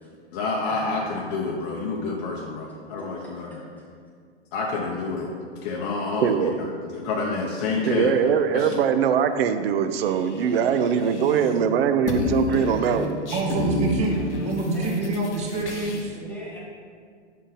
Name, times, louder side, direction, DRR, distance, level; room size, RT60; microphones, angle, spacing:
voice 1, 0.3-3.6 4.5-5.3 5.6-6.5 6.9-8.1 8.5-8.8, left 3 dB, 35° left, -2 dB, 0.6 m, -28 dB
voice 2, 3.0-3.3 3.7-3.8 12.5-13.1 13.4-13.7 14.7-15.0 15.6-15.7 16.1-16.6, equal, 5° left, -5 dB, 0.3 m, -39 dB
voice 3, 6.2-6.5 7.9-13.2, right 7 dB, 60° right, 10 dB, 0.5 m, -22 dB
sound 1, 10.0-11.7 11.9-16.0, left 2 dB, 85° left, 1.0 m, -30 dB
voice 4, 13.3-16.2, right 2 dB, 20° right, 1 dB, 0.8 m, -26 dB
6.3 x 4.0 x 4.0 m, 2.1 s
hypercardioid pair, 135°, 34 cm